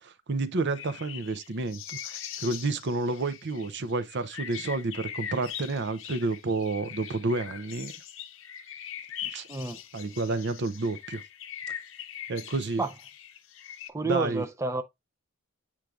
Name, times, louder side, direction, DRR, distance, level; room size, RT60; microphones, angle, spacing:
voice 1, 0.0-7.9 9.2-9.5 9.9-11.2 12.3-12.8 14.0-14.4, right 3 dB, 55° right, 0.6 m, -30 dB
sound 1, 0.7-13.9, left 9 dB, 65° left, 0.8 m, -41 dB
voice 2, 9.5-9.8 12.8-12.9 13.9-14.8, right 2 dB, 15° right, 0.5 m, -30 dB
8.4 x 4.6 x 2.4 m
head